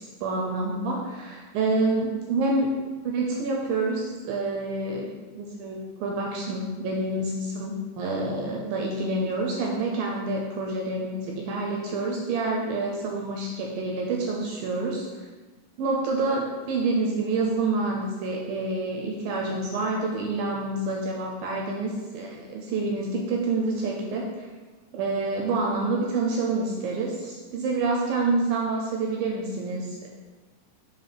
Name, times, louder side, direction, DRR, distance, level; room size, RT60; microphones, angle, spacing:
voice 1, 0.0-2.7 3.0-5.1 5.4-15.1 15.8-24.5 24.9-30.1, right 3 dB, 80° right, -1 dB, 2.1 m, -27 dB
7.4 x 2.8 x 5.8 m, 1.3 s
omnidirectional pair, 4.7 m